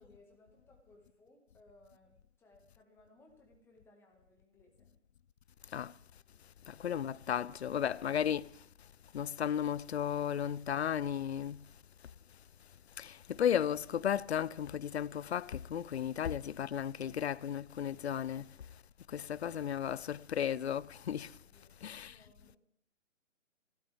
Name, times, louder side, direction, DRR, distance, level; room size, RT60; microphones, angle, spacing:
voice 1, 0.0-4.9 21.4-22.6, left 2 dB, 5° left, 1.8 m, -64 dB
voice 2, 6.8-8.5 9.1-11.6 13.0-18.4 19.1-21.3 21.8-22.1, left 9 dB, 55° left, 0.5 m, -34 dB
26.5 x 12.5 x 3.5 m
figure-of-eight pair, 140°, 38 cm